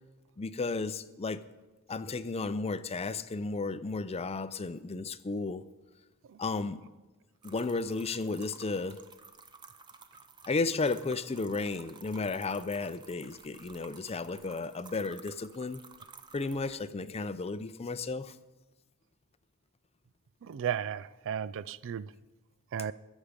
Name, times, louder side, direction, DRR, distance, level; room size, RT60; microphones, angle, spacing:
voice 1, 0.4-1.4 1.9-5.6 6.4-6.8 7.4-9.0 10.5-15.8 16.3-18.4, left 3 dB, 30° left, 0.5 m, -33 dB
sound 1, 7.4-16.7, right 4 dB, 20° right, 0.7 m, -53 dB
voice 2, 20.4-22.1 22.7-22.9, right 8 dB, 60° right, 0.4 m, -34 dB
21.0 x 7.3 x 5.1 m
head